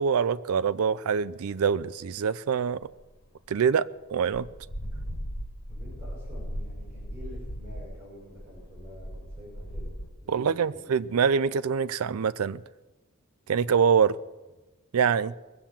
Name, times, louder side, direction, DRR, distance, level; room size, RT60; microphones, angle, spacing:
voice 1, 0.0-2.8 3.5-4.5 10.3-12.6 13.5-14.2 14.9-15.3, right 6 dB, 80° right, 0.4 m, -25 dB
sound 1, 2.8-3.2 4.0-4.1 4.3-10.1, equal, 90° left, 2.0 m, -38 dB
voice 2, 5.7-9.9 10.2-10.9, left 1 dB, 10° right, 5.1 m, -48 dB
21.0 x 7.2 x 7.4 m
head